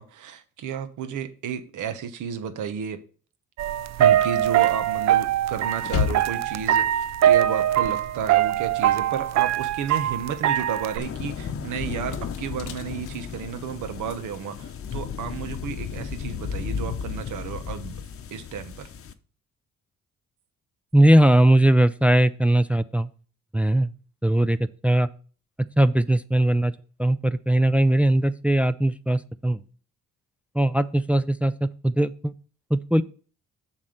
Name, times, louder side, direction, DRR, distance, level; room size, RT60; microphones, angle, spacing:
voice 1, 0.0-3.0 4.0-18.0 18.3-18.9, right 8 dB, 80° right, 1.1 m, -32 dB
sound 1, 3.6-11.0, right 11 dB, 65° right, 0.5 m, -22 dB
sound 2, 5.8-8.8 9.1-15.5, left 7 dB, 85° left, 1.1 m, -36 dB
sound 3, 11.0-19.1, left 7 dB, 50° left, 0.8 m, -34 dB
voice 2, 20.9-23.1 23.5-23.9 24.2-24.6 24.8-25.1 25.8-26.7 27.0-29.6 30.5-32.3 32.7-33.0, right 1 dB, 5° right, 0.4 m, -20 dB
7.3 x 4.3 x 6.4 m
cardioid pair, 90°, 30 cm